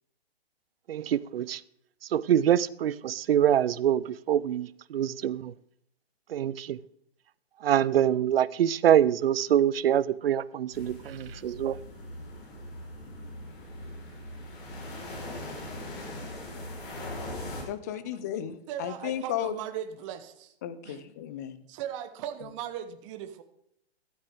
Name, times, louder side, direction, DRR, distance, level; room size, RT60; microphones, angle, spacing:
voice 1, 0.9-1.6 2.1-5.5 6.3-6.8 7.6-11.8, right 10 dB, 65° right, 0.5 m, -25 dB
sound 1, 10.7-17.6, left 1 dB, 50° left, 3.9 m, -40 dB
voice 2, 17.6-19.5 20.6-21.6, left 11 dB, 20° left, 0.4 m, -34 dB
voice 3, 18.7-20.5 20.8-21.0 21.7-23.4, right 10 dB, 30° right, 0.9 m, -38 dB
13.5 x 8.9 x 3.6 m
hypercardioid pair, 130°, 32 cm